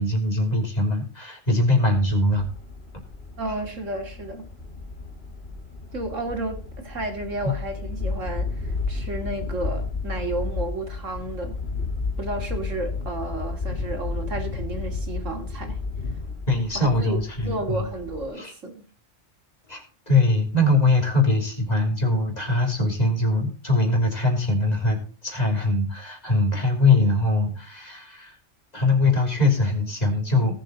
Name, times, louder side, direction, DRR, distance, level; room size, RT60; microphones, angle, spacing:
voice 1, 0.0-2.5 16.5-17.9 18.4-18.5 19.7-28.4 28.7-30.6, left 2 dB, 30° left, 3.5 m, -22 dB
sound 1, 1.8-18.3, left 3 dB, 50° left, 3.4 m, -32 dB
voice 2, 3.4-4.5 5.9-11.6 12.2-15.8 16.7-17.2 17.5-18.8, right 2 dB, 70° right, 2.9 m, -32 dB
17.5 x 7.5 x 4.0 m
omnidirectional pair, 1.3 m